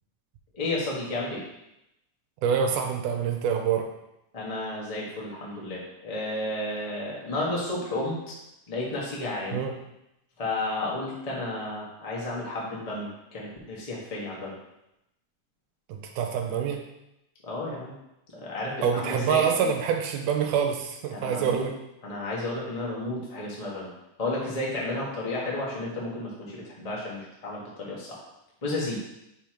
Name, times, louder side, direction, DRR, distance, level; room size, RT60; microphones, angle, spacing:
voice 1, 0.5-1.4 4.3-8.2 8.7-9.6 10.4-14.5 17.4-17.9 18.3-19.7 21.1-21.7 22.0-23.9 24.2-28.2 28.6-29.0, left 2 dB, 50° left, -5 dB, 0.4 m, -32 dB
voice 2, 2.4-3.9 9.5-9.7 15.9-16.8 18.8-21.7, right 7 dB, 85° right, 3 dB, 2.3 m, -26 dB
5.5 x 4.6 x 5.0 m, 0.87 s
omnidirectional pair, 3.6 m